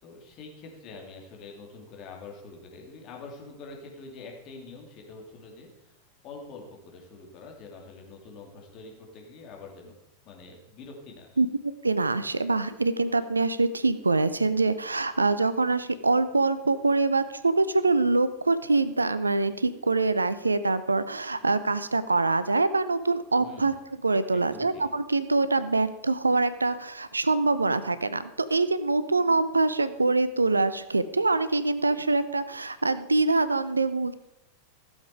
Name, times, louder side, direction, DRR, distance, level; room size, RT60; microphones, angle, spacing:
voice 1, 0.0-5.9 6.2-9.9 10.2-11.4 23.4-23.7 24.3-24.8, left 3 dB, 40° left, 0 dB, 3.1 m, -45 dB
voice 2, 11.8-23.7 24.0-34.1, right 3 dB, 80° right, 14 dB, 0.6 m, -24 dB
15.0 x 7.3 x 5.0 m, 0.87 s
figure-of-eight pair, 90°, 0 cm